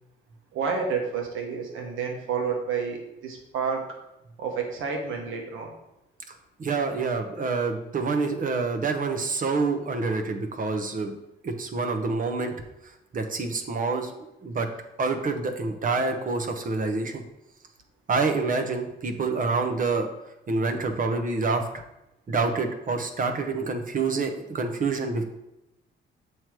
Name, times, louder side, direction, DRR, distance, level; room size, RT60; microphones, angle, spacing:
voice 1, 0.5-3.9 4.4-5.7, right 5 dB, 85° right, 1 dB, 1.3 m, -30 dB
voice 2, 6.6-11.1 11.4-12.5 13.1-14.1 14.4-14.7 15.0-17.2 18.1-20.1 20.5-21.6 22.3-25.2, right 4 dB, 45° right, 6 dB, 0.9 m, -27 dB
7.4 x 3.2 x 4.6 m, 0.89 s
cardioid pair, 90°, 20 cm